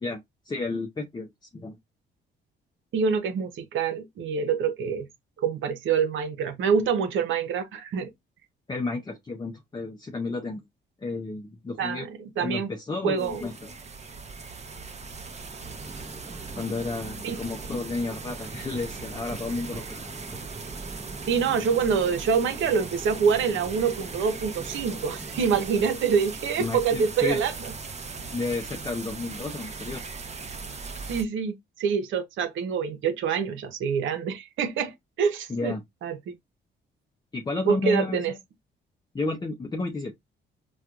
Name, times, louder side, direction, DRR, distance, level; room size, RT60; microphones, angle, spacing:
voice 1, 0.0-1.3 1.5-1.8 8.7-10.6 11.0-12.1 12.4-13.7 16.5-20.1 26.6-27.4 28.3-30.0 35.5-35.8 37.3-38.4 39.1-40.1, left 3 dB, 20° left, 0.6 m, -32 dB
voice 2, 2.9-5.1 5.4-8.1 11.8-12.7 13.0-13.4 17.2-17.4 21.3-27.5 31.1-35.7 36.0-36.2 37.7-38.3, right 6 dB, 75° right, 0.8 m, -26 dB
sound 1, 13.2-31.2, right 4 dB, 35° right, 0.8 m, -39 dB
sound 2, 15.6-25.6, right 2 dB, 5° right, 1.0 m, -44 dB
4.3 x 2.4 x 2.4 m
cardioid pair, 90°, 20 cm